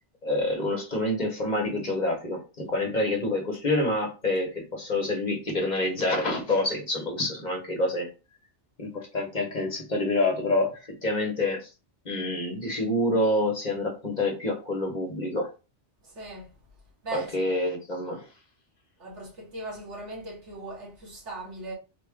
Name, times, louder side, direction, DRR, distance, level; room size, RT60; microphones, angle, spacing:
voice 1, 0.2-8.1 8.8-11.7 12.0-15.5 17.1-18.2, left 2 dB, 40° left, 1.1 m, -27 dB
voice 2, 16.0-16.5 17.0-17.3 19.0-21.7, right 2 dB, 85° right, 1.8 m, -39 dB
3.8 x 2.4 x 3.6 m
omnidirectional pair, 1.2 m